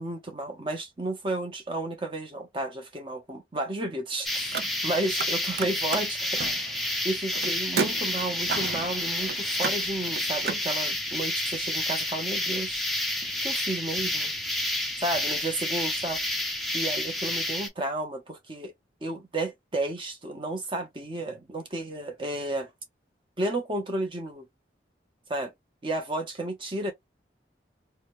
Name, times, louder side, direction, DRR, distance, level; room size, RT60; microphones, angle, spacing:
voice 1, 0.0-6.7 7.0-12.8 13.4-14.3 15.0-16.2 16.7-18.7 19.0-22.7 23.4-24.5 25.3-25.5 25.8-26.9, right 2 dB, 30° right, 0.8 m, -32 dB
sound 1, 4.2-17.7, left 1 dB, ahead, 0.4 m, -30 dB
Car, 4.4-5.3 5.5-10.6, right 5 dB, 60° right, 0.5 m, -34 dB
2.8 x 2.2 x 3.0 m
head